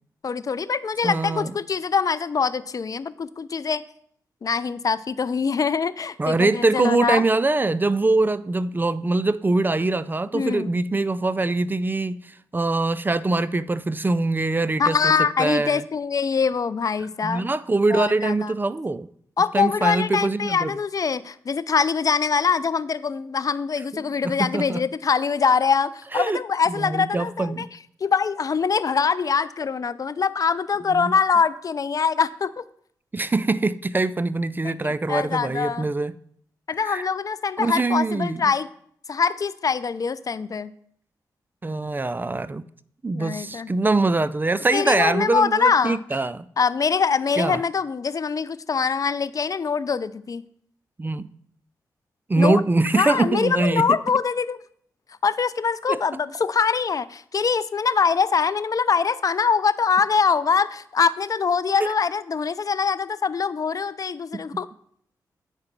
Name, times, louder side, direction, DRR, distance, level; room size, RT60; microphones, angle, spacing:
voice 1, 0.2-3.8 4.4-7.2 10.3-10.7 14.8-17.5 17.9-18.5 19.4-27.7 28.0-32.6 34.6-35.9 36.7-38.7 39.1-40.7 43.1-43.7 44.7-46.0 46.6-50.5 52.4-52.6 52.9-54.6 55.2-64.7, left 5 dB, 50° left, 0.5 m, -23 dB
voice 2, 1.0-1.5 6.2-15.1 15.4-15.8 17.2-19.1 19.5-20.7 24.0-24.8 26.1-26.4 26.8-27.7 30.9-31.1 33.1-36.1 36.8-37.1 37.6-38.4 41.6-42.6 43.0-46.5 47.4-47.6 51.0-51.3 52.3-54.0 55.9-56.0 61.8-61.9, right 2 dB, 25° right, 0.4 m, -23 dB
8.9 x 4.8 x 5.9 m
cardioid pair, 50°, 8 cm